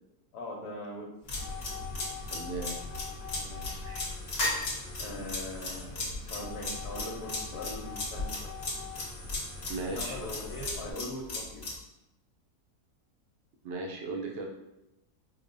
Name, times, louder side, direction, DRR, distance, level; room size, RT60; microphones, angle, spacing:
voice 1, 0.3-1.1 3.3-3.9 5.0-8.5 9.8-11.6, left 1 dB, 85° left, -5 dB, 1.3 m, -41 dB
sound 1, 1.3-10.9, left 3 dB, 65° left, 1.3 m, -41 dB
sound 2, 1.3-11.8, left 2 dB, 45° left, 1.1 m, -35 dB
voice 2, 2.3-2.7 3.8-4.0 9.7-10.2 13.6-14.5, right 3 dB, 85° right, 0 dB, 0.5 m, -36 dB
5.1 x 2.0 x 2.6 m, 0.89 s
omnidirectional pair, 1.7 m